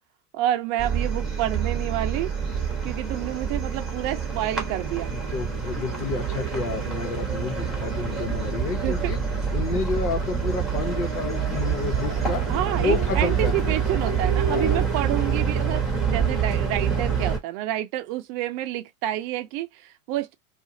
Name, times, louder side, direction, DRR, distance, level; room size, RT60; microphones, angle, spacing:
voice 1, 0.3-2.3 2.8-5.1 7.9-8.0 8.8-9.1 12.5-20.3, right 13 dB, 35° right, 0.5 m, -29 dB
sound 1, 0.8-17.4, right 6 dB, ahead, 0.9 m, -26 dB
voice 2, 5.1-9.2 9.5-12.4 12.8-13.8 14.5-14.9, left 4 dB, 85° left, 1.2 m, -30 dB
2.5 x 2.4 x 2.7 m
hypercardioid pair, 115°, 44 cm